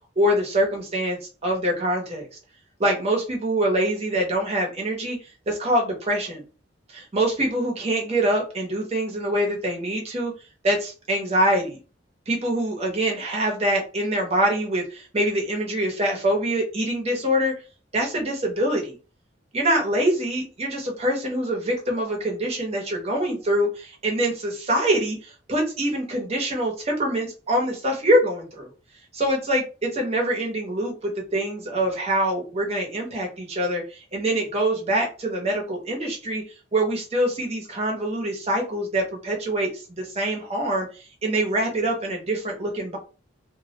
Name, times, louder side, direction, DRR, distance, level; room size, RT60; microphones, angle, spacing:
voice 1, 0.2-2.3 2.8-5.2 5.5-6.4 6.9-10.3 10.6-11.8 12.3-17.5 17.9-19.0 19.5-28.7 29.1-36.4 36.7-43.0, right 1 dB, 35° right, 0 dB, 0.7 m, -24 dB
2.2 x 2.0 x 2.8 m, 0.35 s
head